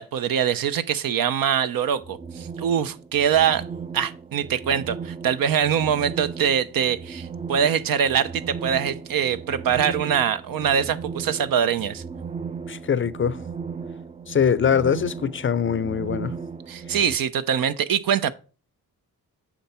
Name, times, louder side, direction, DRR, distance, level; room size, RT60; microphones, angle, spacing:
voice 1, 0.0-3.6 3.9-12.0 16.7-18.3, right 8 dB, 65° right, 0.7 m, -23 dB
sound 1, 1.9-17.2, right 5 dB, 20° right, 0.4 m, -36 dB
voice 2, 12.7-13.4 14.3-16.3, left 7 dB, 35° left, 0.5 m, -22 dB
9.1 x 6.0 x 4.3 m
cardioid pair, 70°, 36 cm